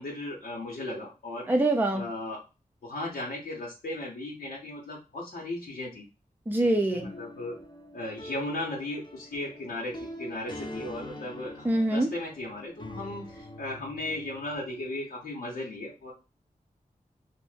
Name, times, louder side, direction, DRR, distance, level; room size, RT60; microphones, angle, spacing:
voice 1, 0.0-1.5 1.9-2.4 2.8-6.0 6.9-7.6 7.9-16.1, left 1 dB, 85° left, -4 dB, 0.8 m, -36 dB
voice 2, 1.5-2.1 6.5-7.1 11.6-12.1, right 1 dB, 15° right, 3 dB, 0.5 m, -24 dB
sound 1, 6.9-15.0, left 1 dB, 30° left, 0.7 m, -44 dB
2.5 x 2.1 x 3.3 m, 0.30 s
cardioid pair, 50°, 15 cm